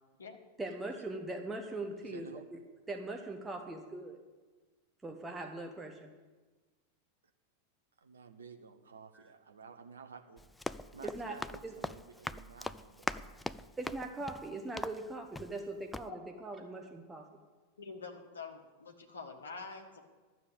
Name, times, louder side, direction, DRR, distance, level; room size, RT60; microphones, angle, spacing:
voice 1, 0.6-2.3 2.9-4.2 5.0-6.1 9.1-9.2 11.0-11.4 11.6-11.7 13.8-17.3, right 2 dB, 10° right, 4 dB, 1.0 m, -41 dB
voice 2, 2.0-2.5 8.0-10.4 10.9-13.1, right 5 dB, 70° right, 7 dB, 1.0 m, -52 dB
Run, 10.4-15.7 15.9-16.1, left 2 dB, 5° left, 0.3 m, -41 dB
voice 3, 17.8-20.0, left 4 dB, 70° left, 4 dB, 1.4 m, -46 dB
12.0 x 7.1 x 8.1 m, 1.3 s
figure-of-eight pair, 90°, 0 cm